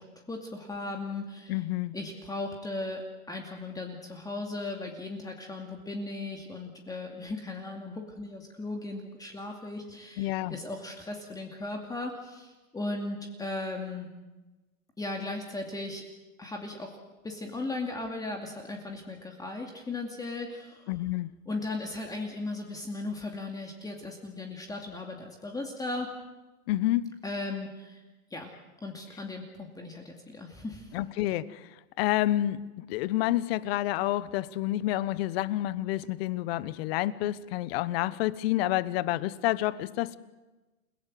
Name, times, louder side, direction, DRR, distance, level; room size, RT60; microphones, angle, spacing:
voice 1, 0.3-1.6 1.9-14.1 15.0-16.0 16.4-17.0 17.2-20.9 21.5-26.1 27.2-28.0 28.3-28.5 28.8-31.0, left 2 dB, 10° left, 2 dB, 2.4 m, -37 dB
voice 2, 1.5-2.0 10.2-10.6 20.9-21.3 26.7-27.1 30.9-40.2, left 15 dB, 40° left, 17 dB, 1.1 m, -29 dB
29.0 x 17.5 x 7.8 m, 1.1 s
hypercardioid pair, 135°, 44 cm